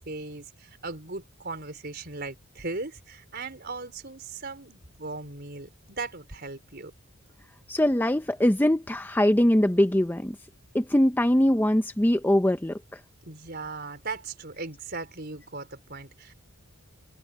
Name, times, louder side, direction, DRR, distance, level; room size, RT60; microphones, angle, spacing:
voice 1, 0.0-6.9 13.2-16.3, right 3 dB, 45° right, 4.4 m, -38 dB
voice 2, 7.7-10.4 10.7-12.8, left 1 dB, 10° left, 0.6 m, -22 dB
head